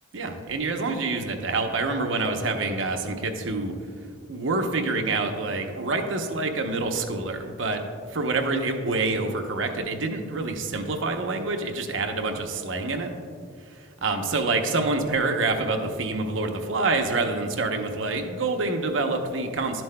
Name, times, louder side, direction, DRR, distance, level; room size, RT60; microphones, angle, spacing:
voice 1, 0.1-3.7 4.3-7.8 8.1-13.1 13.7-19.8, right 3 dB, 90° right, 5 dB, 0.8 m, -27 dB
11.0 x 7.6 x 2.2 m, 2.2 s
head